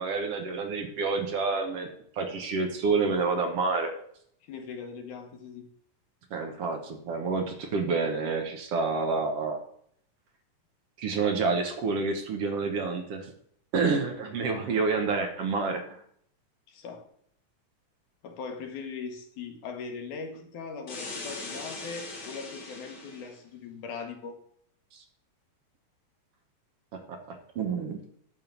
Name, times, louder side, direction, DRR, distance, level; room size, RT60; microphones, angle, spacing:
voice 1, 0.0-1.9 2.2-3.9 6.3-9.6 11.0-13.3 13.7-16.0 24.9-25.0 26.9-28.0, right 4 dB, 60° right, 4 dB, 1.8 m, -28 dB
voice 2, 4.4-5.7 16.7-17.1 18.2-24.3, left 5 dB, 80° left, 4 dB, 2.6 m, -40 dB
sound 1, 20.9-23.3, left 3 dB, 40° left, 1.8 m, -40 dB
11.0 x 3.7 x 7.1 m, 0.66 s
omnidirectional pair, 3.6 m